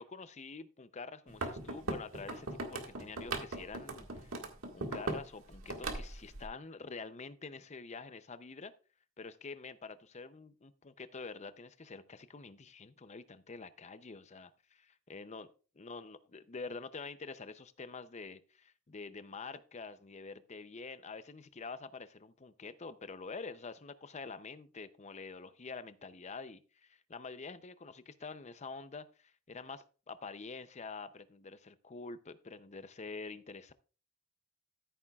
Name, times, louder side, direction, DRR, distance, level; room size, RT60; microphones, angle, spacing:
voice 1, 0.0-4.5 4.7-8.7 9.2-15.5 15.8-33.7, left 4 dB, 30° left, 13 dB, 0.6 m, -47 dB
sound 1, 1.3-5.3 5.5-6.4, right 2 dB, 70° right, 1.8 m, -39 dB
14.0 x 8.7 x 2.4 m, 0.37 s
head